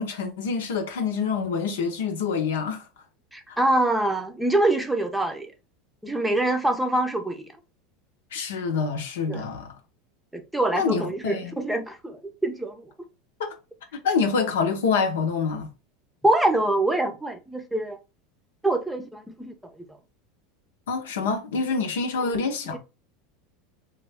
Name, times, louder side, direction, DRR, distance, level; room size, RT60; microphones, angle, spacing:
voice 1, 0.0-2.9 8.3-9.7 10.7-11.6 13.4-13.5 14.0-15.7 20.9-22.8, left 5 dB, 90° left, 0.8 m, -26 dB
voice 2, 3.3-5.5 6.0-7.4 9.3-9.4 10.3-12.8 16.2-18.0 18.6-19.5 22.7-22.8, right 1 dB, 5° right, 0.6 m, -25 dB
3.2 x 2.2 x 3.4 m
supercardioid pair, 115°, 0 cm